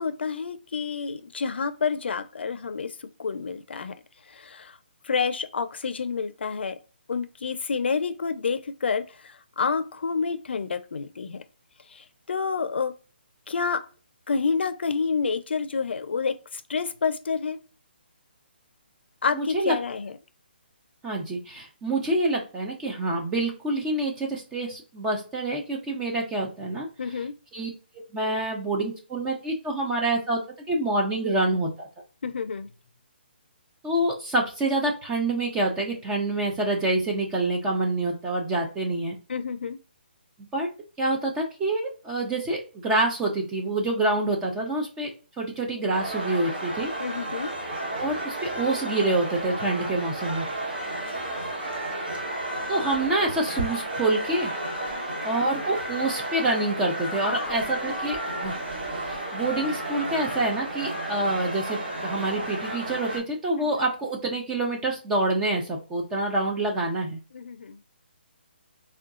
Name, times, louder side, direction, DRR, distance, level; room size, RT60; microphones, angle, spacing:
voice 1, 0.0-4.0 4.3-4.8 5.0-6.8 7.1-11.4 11.9-12.9 13.5-13.8 14.3-17.6 19.2-20.1 27.0-27.3 32.2-32.7 39.3-39.8 47.0-47.5 50.5-50.9 54.9-55.3 57.2-57.6 57.9-58.1 63.6-63.7 67.3-67.8, left 5 dB, 70° left, 11 dB, 0.4 m, -29 dB
voice 2, 19.3-19.8 21.0-26.9 27.5-27.7 28.1-30.4 30.7-31.9 33.8-39.2 40.5-40.7 41.0-45.1 45.4-46.9 47.9-50.5 52.7-54.5 55.2-58.6 59.0-67.2, right 2 dB, 5° right, 0 dB, 0.3 m, -27 dB
sound 1, 45.9-63.2, right 1 dB, 55° right, 1.6 m, -32 dB
3.7 x 2.2 x 2.3 m, 0.35 s
hypercardioid pair, 170°, 6 cm